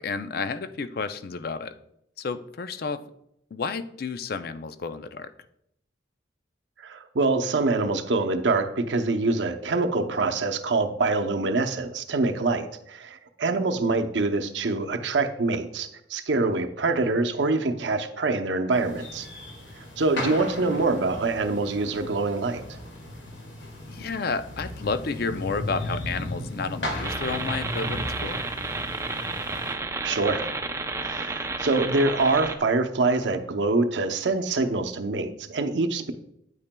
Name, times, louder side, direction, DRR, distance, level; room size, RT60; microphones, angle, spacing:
voice 1, 0.0-1.8 2.2-3.0 3.5-5.3 20.2-20.9 23.9-28.5, left 4 dB, 55° left, 12 dB, 0.4 m, -31 dB
voice 2, 6.8-19.3 19.8-22.8 30.0-30.4 31.0-36.1, right 3 dB, 75° right, 6 dB, 0.7 m, -25 dB
sound 1, 18.7-29.7, left 1 dB, 75° left, 2.0 m, -36 dB
sound 2, 27.0-32.6, right 3 dB, 15° right, 0.5 m, -31 dB
9.2 x 8.7 x 2.2 m, 0.76 s
head